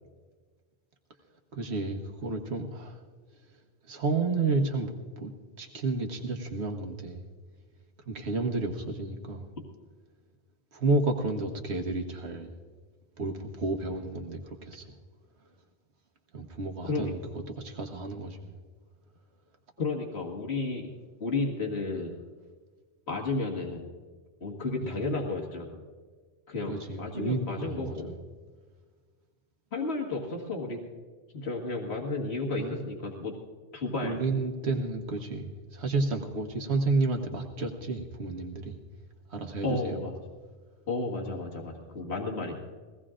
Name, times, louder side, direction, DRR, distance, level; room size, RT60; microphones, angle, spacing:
voice 1, 1.5-3.0 3.8-7.2 8.0-9.5 10.7-12.5 13.2-15.0 16.3-17.2 17.5-18.6 24.8-24.9 26.6-28.0 32.5-32.9 34.0-38.8 39.3-40.0, right 3 dB, 90° right, 3 dB, 1.4 m, -31 dB
voice 2, 19.8-20.9 21.2-22.1 23.1-23.9 24.4-25.8 26.5-28.1 29.7-30.8 31.3-33.4 33.7-34.2 39.6-40.1 40.9-42.6, left 3 dB, 80° left, -1 dB, 2.0 m, -32 dB
22.0 x 16.5 x 2.5 m, 1.5 s
omnidirectional pair, 1.1 m